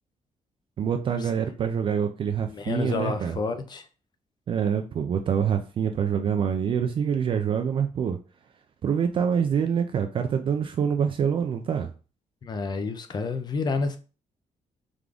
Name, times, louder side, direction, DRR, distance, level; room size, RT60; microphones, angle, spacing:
voice 1, 0.8-3.3 4.5-8.2 8.8-11.9, right 7 dB, 40° right, 0.4 m, -26 dB
voice 2, 2.4-3.9 12.4-14.0, left 4 dB, 35° left, 0.5 m, -29 dB
3.7 x 3.5 x 3.4 m
cardioid pair, 170°, 13 cm